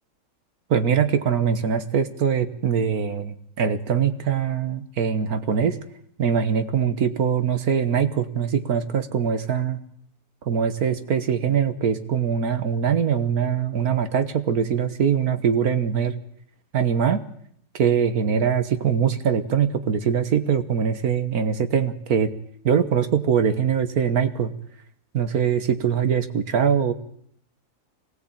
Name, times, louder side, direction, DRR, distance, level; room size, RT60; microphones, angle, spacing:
voice 1, 0.7-5.8 6.2-9.8 10.5-16.2 16.7-17.2 17.8-22.3 22.6-24.5 25.1-26.9, right 7 dB, 65° right, 10 dB, 1.7 m, -22 dB
23.5 x 18.0 x 8.8 m, 0.66 s
omnidirectional pair, 1.7 m